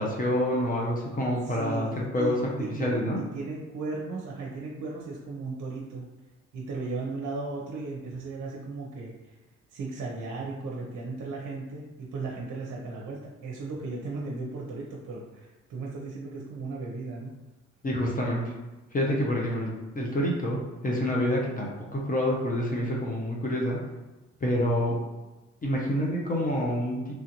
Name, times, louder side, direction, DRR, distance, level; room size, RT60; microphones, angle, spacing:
voice 1, 0.0-2.4 2.8-3.2 17.8-18.4 18.9-23.8 24.4-25.0 25.6-27.0, equal, 30° left, -2 dB, 0.7 m, -27 dB
voice 2, 1.4-6.1 6.5-9.3 9.7-17.3, right 3 dB, 65° right, -3 dB, 0.6 m, -36 dB
3.1 x 2.5 x 2.9 m, 1.1 s
cardioid pair, 90°, 30 cm